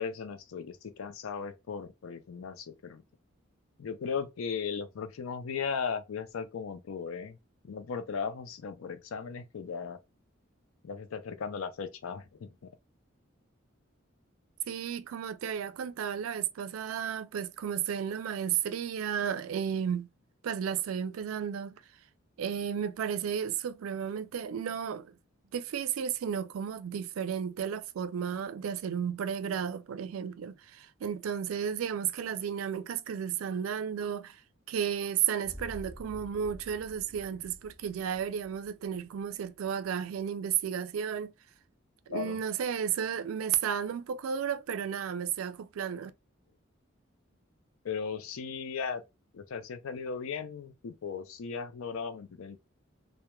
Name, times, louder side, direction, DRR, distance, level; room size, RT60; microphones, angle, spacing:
voice 1, 0.0-3.0 3.8-7.4 7.6-10.0 10.8-12.7 42.1-42.4 47.8-49.0 49.3-52.6, left 6 dB, 90° left, 0.4 m, -37 dB
voice 2, 14.7-20.1 20.4-21.7 22.4-25.1 25.5-34.4 34.7-41.3 42.1-46.1, right 8 dB, 85° right, 0.3 m, -33 dB
sound 1, 35.4-39.4, equal, 15° left, 0.5 m, -49 dB
2.2 x 2.1 x 2.9 m
head